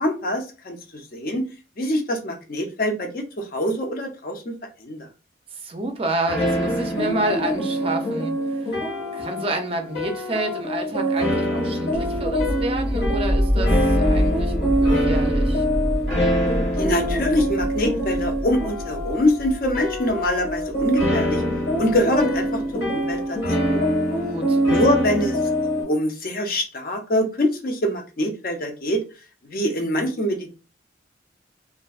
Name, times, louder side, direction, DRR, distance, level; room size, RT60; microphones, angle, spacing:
voice 1, 0.0-1.4 1.8-4.5 4.8-5.1 16.8-21.4 21.8-23.4 23.6-23.8 24.6-25.4 25.8-29.0 29.4-30.5, left 1 dB, 50° left, 0.5 m, -24 dB
voice 2, 5.5-8.7 9.1-15.6 24.2-24.6, right 2 dB, 30° right, 0.4 m, -29 dB
sound 1, 6.3-25.8, equal, 70° left, 1.2 m, -24 dB
sound 2, 11.9-22.6, equal, ahead, 0.7 m, -26 dB
2.5 x 2.1 x 2.3 m
head